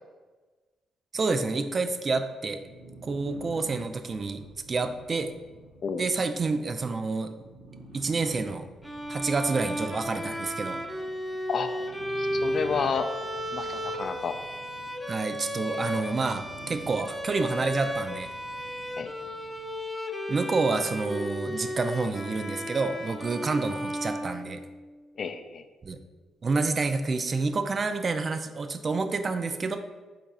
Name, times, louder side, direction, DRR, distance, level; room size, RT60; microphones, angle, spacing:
voice 1, 1.1-2.6 3.0-4.4 4.7-5.3 6.0-7.3 7.9-8.7 9.1-10.8 15.1-18.3 20.3-24.6 25.8-26.0 26.4-29.8, right 3 dB, 45° right, 8 dB, 0.4 m, -28 dB
sound 1, 2.6-19.8, right 2 dB, 75° right, 0.7 m, -49 dB
Bowed string instrument, 8.8-24.9, equal, 5° left, 0.6 m, -34 dB
voice 2, 12.2-13.1 13.5-14.4 19.0-19.1 25.2-25.6, left 6 dB, 55° left, 8 dB, 0.4 m, -30 dB
4.4 x 2.5 x 4.0 m, 1.3 s
hypercardioid pair, 45°, 0 cm